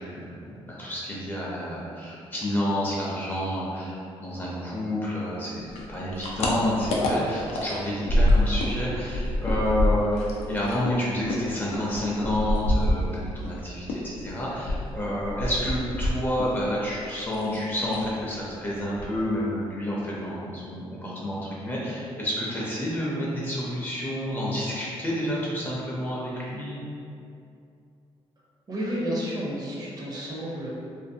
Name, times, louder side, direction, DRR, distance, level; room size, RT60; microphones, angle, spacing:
voice 1, 0.0-26.8, left 1 dB, 20° left, -6 dB, 0.5 m, -29 dB
sound 1, 5.7-8.8 9.0-13.5 13.9-16.6 16.9-17.6 17.9-18.1 18.5-18.6 18.8-19.4, left 1 dB, 85° left, 0.4 m, -26 dB
voice 2, 28.7-30.7, equal, 40° right, -5 dB, 0.6 m, -31 dB
2.5 x 2.5 x 2.6 m, 2.5 s
cardioid pair, 130°, 11 cm